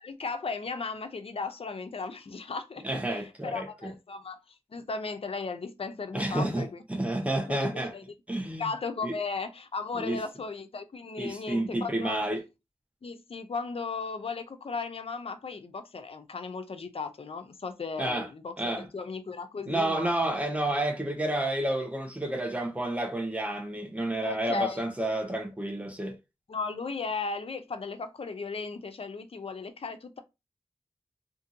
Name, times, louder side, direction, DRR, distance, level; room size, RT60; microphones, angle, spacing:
voice 1, 0.0-6.8 7.5-8.0 8.6-12.3 13.0-20.1 24.2-24.8 26.5-30.2, left 4 dB, 55° left, 0.5 m, -36 dB
voice 2, 2.8-3.9 6.1-7.9 8.3-8.7 9.0-9.1 9.9-10.2 11.2-12.4 18.0-18.3 18.6-18.9 19.7-26.1, right 1 dB, 10° right, 0.8 m, -30 dB
2.6 x 2.5 x 2.6 m
wide cardioid pair, 55°, 12 cm